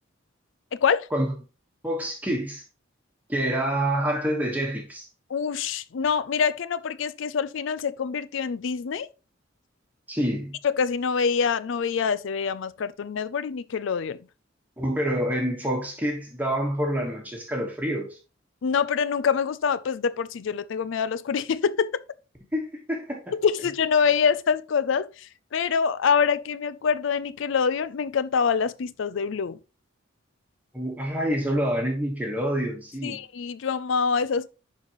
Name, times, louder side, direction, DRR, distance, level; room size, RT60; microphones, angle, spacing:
voice 1, 1.8-2.6 3.3-5.1 10.1-10.6 14.8-18.2 22.5-23.3 30.7-33.2, equal, 10° right, 1.4 m, -27 dB
voice 2, 5.3-9.1 10.6-14.2 18.6-22.0 23.3-29.6 33.0-34.5, left 6 dB, 70° left, 0.4 m, -25 dB
10.5 x 4.1 x 3.0 m
head